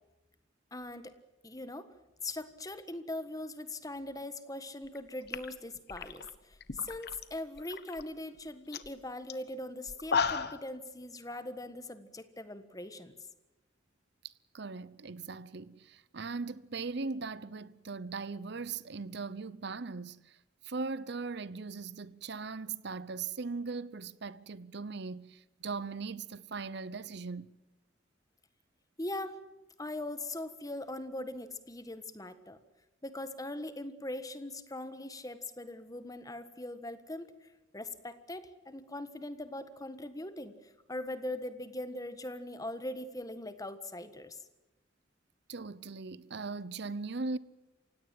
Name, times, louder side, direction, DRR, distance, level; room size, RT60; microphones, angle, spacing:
voice 1, 0.7-1.1 1.4-1.9 2.2-13.1 29.0-29.4 29.8-32.6 33.0-44.4, left 1 dB, 20° left, 1.5 m, -41 dB
sound 1, 4.8-5.0 5.3-7.2 7.6-8.0 8.4-8.5 8.7-8.9 9.3-9.4 9.9-10.7, left 5 dB, 55° left, 1.2 m, -34 dB
voice 2, 14.2-20.4 20.6-27.5 45.5-47.4, right 4 dB, 60° right, 0.8 m, -39 dB
28.0 x 17.0 x 7.7 m
head